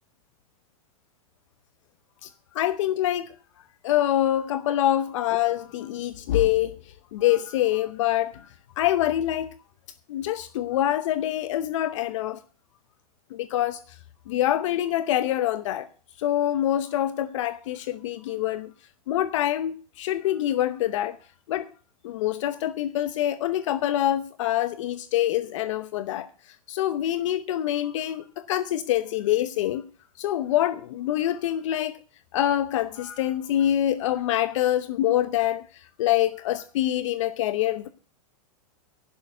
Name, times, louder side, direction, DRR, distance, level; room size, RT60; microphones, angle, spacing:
voice 1, 2.2-3.3 3.8-9.5 10.1-12.4 13.3-14.0 14.3-15.9 16.2-18.7 19.1-21.2 21.5-21.7 22.0-29.8 30.2-32.0 32.3-37.9, left 12 dB, 60° left, 13 dB, 0.8 m, -25 dB
11.0 x 6.8 x 8.1 m, 0.39 s
supercardioid pair, 160°, 18 cm